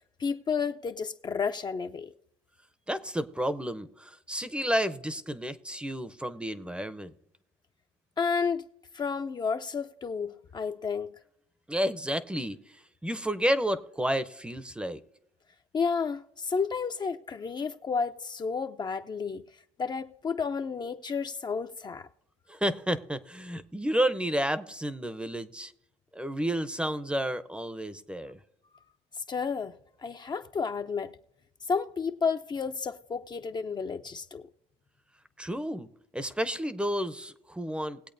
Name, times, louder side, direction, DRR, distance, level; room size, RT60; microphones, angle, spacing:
voice 1, 0.2-2.1 8.2-8.7 8.9-11.2 15.7-19.4 19.8-22.1 29.2-29.8 30.0-31.2 31.7-34.5, left 5 dB, 30° left, 0.5 m, -31 dB
voice 2, 2.9-7.1 11.7-15.0 22.5-25.7 26.1-28.4 35.4-35.9 36.1-38.1, equal, 5° right, 0.7 m, -31 dB
20.0 x 8.2 x 2.6 m
supercardioid pair, 85°, 14 cm